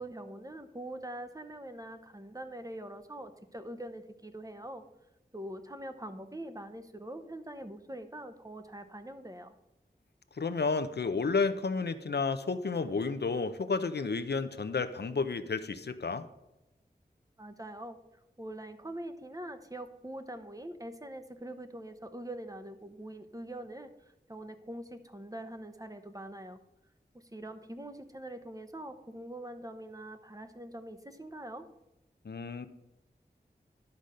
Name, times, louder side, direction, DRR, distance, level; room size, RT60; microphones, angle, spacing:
voice 1, 0.0-4.8 5.3-9.6 17.4-18.0 18.4-23.9 24.3-26.6 27.3-31.7, right 1 dB, 20° right, 8 dB, 0.9 m, -43 dB
voice 2, 10.4-16.2 32.2-32.7, left 4 dB, 70° left, 11 dB, 0.6 m, -31 dB
11.5 x 4.1 x 6.4 m, 0.93 s
wide cardioid pair, 45°, 18 cm